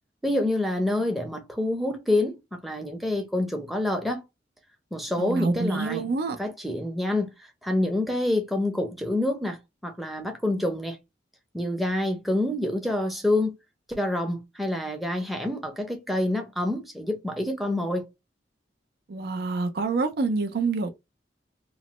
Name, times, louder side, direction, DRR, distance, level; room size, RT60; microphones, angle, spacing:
voice 1, 0.2-4.2 4.9-6.0 6.4-9.6 9.8-11.0 11.5-13.6 13.9-18.1, left 1 dB, ahead, 0.6 m, -27 dB
voice 2, 5.2-6.4 19.1-20.9, right 3 dB, 60° right, 0.5 m, -27 dB
3.0 x 2.0 x 2.9 m
head